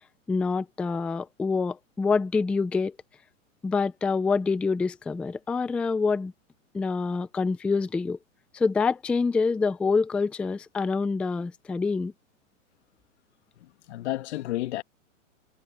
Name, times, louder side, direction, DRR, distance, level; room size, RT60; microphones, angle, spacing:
voice 1, 0.3-3.0 3.6-6.3 6.7-8.2 8.5-12.1, left 4 dB, 5° left, 0.4 m, -26 dB
voice 2, 13.6-14.8, left 16 dB, 55° left, 2.5 m, -32 dB
hypercardioid pair, 140°, 40 cm